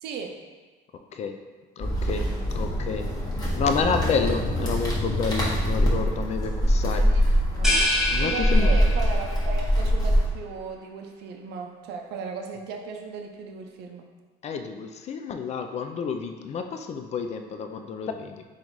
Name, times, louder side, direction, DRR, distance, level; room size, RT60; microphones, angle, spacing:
voice 1, 0.0-0.4 6.9-7.9 8.2-14.1, right 5 dB, 80° right, 3 dB, 0.5 m, -36 dB
voice 2, 0.9-1.4 1.8-3.1 3.6-7.1 8.1-8.7 14.4-18.4, left 5 dB, 40° left, 6 dB, 0.4 m, -29 dB
sound 1, 1.8-10.3, equal, 25° left, 1.1 m, -24 dB
sound 2, 7.6-9.4, left 1 dB, 5° right, 0.9 m, -26 dB
4.0 x 2.4 x 4.5 m, 1.3 s
cardioid pair, 110°, 17 cm